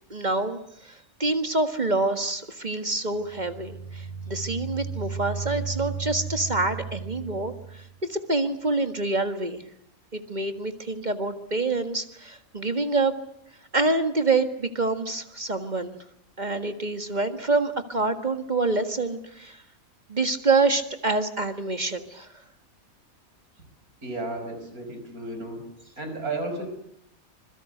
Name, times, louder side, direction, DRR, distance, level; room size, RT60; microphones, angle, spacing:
voice 1, 0.1-7.8 8.1-9.6 10.1-13.1 13.7-16.0 16.4-19.6 20.1-22.3, right 3 dB, 30° right, 8 dB, 1.8 m, -26 dB
sound 1, 3.2-7.9, right 5 dB, 35° left, 2.5 m, -35 dB
voice 2, 24.0-25.6 26.0-26.7, right 2 dB, 85° right, 6 dB, 6.0 m, -33 dB
26.0 x 22.0 x 7.9 m, 0.74 s
omnidirectional pair, 1.5 m